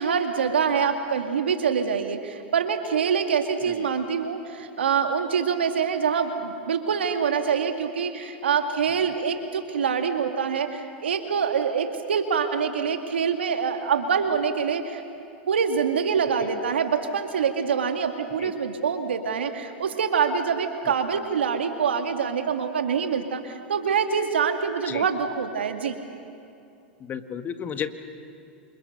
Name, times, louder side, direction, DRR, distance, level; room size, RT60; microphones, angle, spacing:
voice 1, 0.0-15.0 15.5-25.9, right 6 dB, 90° right, 6 dB, 2.3 m, -25 dB
voice 2, 27.0-27.9, left 8 dB, 30° left, 9 dB, 1.8 m, -33 dB
28.0 x 27.0 x 6.7 m, 2.7 s
hypercardioid pair, 105°, 6 cm